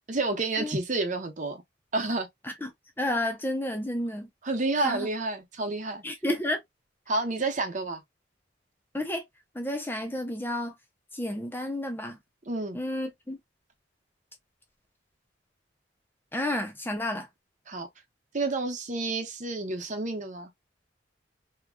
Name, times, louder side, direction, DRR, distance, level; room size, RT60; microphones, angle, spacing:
voice 1, 0.1-1.6 1.9-2.3 4.4-6.0 7.1-8.0 12.5-12.8 17.7-17.9 18.3-20.5, right 2 dB, 40° right, 0.9 m, -29 dB
voice 2, 3.0-4.3 4.8-5.1 6.0-6.6 8.9-9.2 9.6-10.7 11.2-12.2 12.7-13.4 16.3-17.3, left 1 dB, 10° left, 0.6 m, -30 dB
3.6 x 2.9 x 2.2 m
head